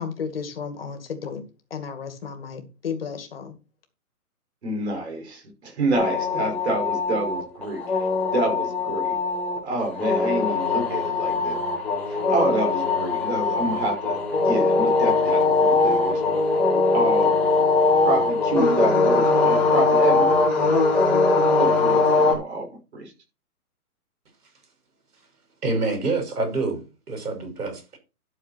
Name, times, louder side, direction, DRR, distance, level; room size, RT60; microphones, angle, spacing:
voice 1, 0.0-1.4 1.7-3.6, left 6 dB, 40° left, 2.3 m, -33 dB
voice 2, 4.6-9.2 9.6-11.6 12.1-16.4 16.9-17.3 18.0-20.3 21.6-23.1, right 2 dB, 45° right, 5.8 m, -28 dB
sound 1, 5.9-22.3, left 3 dB, ahead, 1.3 m, -21 dB
voice 3, 25.6-28.0, right 3 dB, 85° right, 5.8 m, -27 dB
12.0 x 6.9 x 4.4 m
hypercardioid pair, 180°, 45 cm